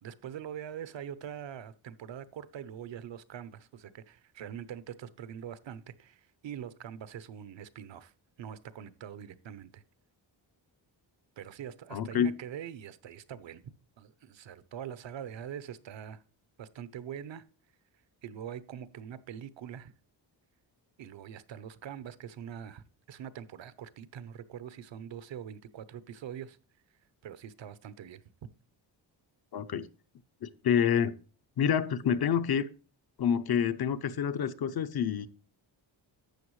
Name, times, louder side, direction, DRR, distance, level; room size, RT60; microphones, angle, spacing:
voice 1, 0.0-8.1 8.4-9.8 11.4-13.6 14.0-16.2 16.6-17.4 18.2-19.9 21.0-26.6 27.2-28.2, right 9 dB, 70° right, 0.8 m, -43 dB
voice 2, 11.9-12.4 29.5-29.9 30.4-31.2 31.6-32.7 33.2-35.3, left 8 dB, 55° left, 0.7 m, -28 dB
12.0 x 8.1 x 3.1 m
wide cardioid pair, 165°, 47 cm